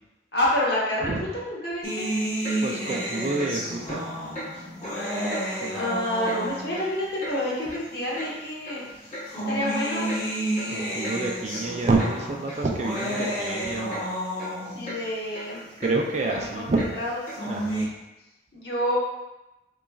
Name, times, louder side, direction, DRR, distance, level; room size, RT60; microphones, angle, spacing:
voice 1, 0.3-2.1 5.7-8.8 9.3-10.1 14.7-15.7 16.2-17.2 18.5-19.0, left 1 dB, 60° left, -6 dB, 1.2 m, -28 dB
sound 1, 1.8-6.9 7.8-7.9 9.0-14.9 17.1-17.8, right 1 dB, 20° left, 1.1 m, -31 dB
Clock, 2.4-2.6 2.9-3.1 3.4-3.5 3.9-4.0 4.3-4.5 4.8-5.0 5.3-5.4 5.8-5.9 6.3-6.4 6.7-7.4 7.7-7.8 8.1-8.3 8.6-8.8 9.1-9.3 9.6-9.7 10.1-10.2 10.6-10.7 11.0-11.2 11.5-11.6 12.0-12.1 12.5-12.6 12.9-13.1 13.4-13.6 13.9-14.0 14.4-14.5 14.8-15.0 15.3-15.4 15.8-15.9 16.3-16.4 16.8-16.9 17.3-17.4, equal, 40° left, 0.9 m, -37 dB
voice 2, 2.6-4.0 5.6-5.9 10.7-14.0 15.8-16.9 17.5-17.9, right 3 dB, 35° right, 2 dB, 0.4 m, -28 dB
5.0 x 3.0 x 2.3 m, 0.99 s
head